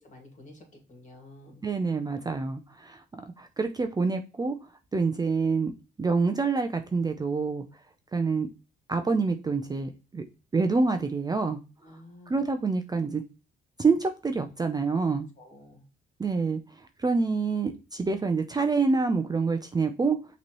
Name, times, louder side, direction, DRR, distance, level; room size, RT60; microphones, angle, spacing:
voice 1, 0.0-1.6 11.8-12.4 15.4-15.9, left 1 dB, 40° left, 3 dB, 2.1 m, -51 dB
voice 2, 1.6-3.0 3.4-4.5 4.9-5.7 6.0-7.6 8.1-8.5 8.9-10.2 10.5-11.6 12.3-13.2 13.8-15.3 16.2-20.2, right 4 dB, 20° right, 6 dB, 0.5 m, -27 dB
5.8 x 3.1 x 3.0 m, 0.31 s
cardioid pair, 90°, 20 cm